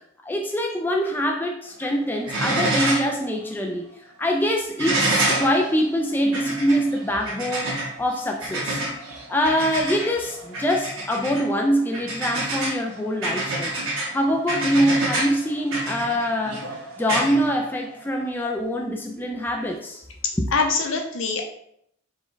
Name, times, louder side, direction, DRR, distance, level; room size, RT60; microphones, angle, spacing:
voice 1, 0.2-3.8 4.2-8.8 9.3-13.8 14.1-16.7 17.0-20.0 20.4-20.5, equal, 10° left, 1 dB, 0.3 m, -24 dB
sound 1, 1.6-1.9 2.2-3.2 3.5-3.6 4.8-18.2 19.6-19.7, right 1 dB, 90° right, 1.0 m, -28 dB
voice 2, 20.2-21.4, left 4 dB, 75° left, 3 dB, 0.7 m, -24 dB
4.3 x 2.3 x 3.8 m, 0.70 s
head